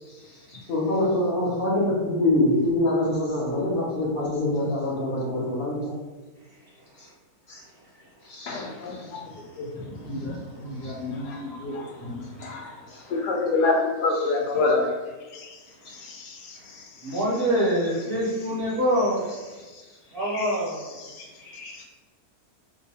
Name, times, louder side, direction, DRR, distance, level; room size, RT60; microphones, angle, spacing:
voice 1, 0.5-5.9 7.0-7.1 7.5-7.6 8.3-8.6 10.8-10.9, left 1 dB, 45° left, -4 dB, 0.8 m, -25 dB
voice 2, 8.5-17.2 19.6-19.8 20.2-21.8, left 3 dB, 90° left, 0 dB, 1.3 m, -30 dB
voice 3, 9.7-11.0 11.6-11.7 12.2-13.1 15.8-16.1 16.5-19.6 20.1-20.9, equal, 50° right, -6 dB, 0.7 m, -28 dB
2.8 x 2.5 x 4.1 m, 1.3 s
omnidirectional pair, 1.7 m